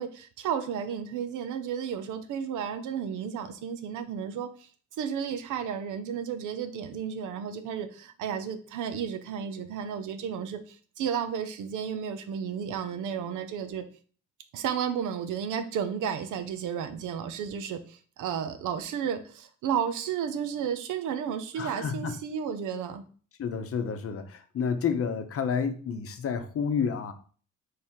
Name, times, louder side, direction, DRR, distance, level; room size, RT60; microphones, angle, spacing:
voice 1, 0.0-4.7 5.0-13.8 14.5-23.0, right 8 dB, 85° right, 9 dB, 0.7 m, -33 dB
voice 2, 21.6-22.1 23.4-27.1, left 6 dB, 50° left, 8 dB, 0.8 m, -30 dB
3.5 x 3.4 x 4.4 m, 0.42 s
cardioid pair, 90°, 30 cm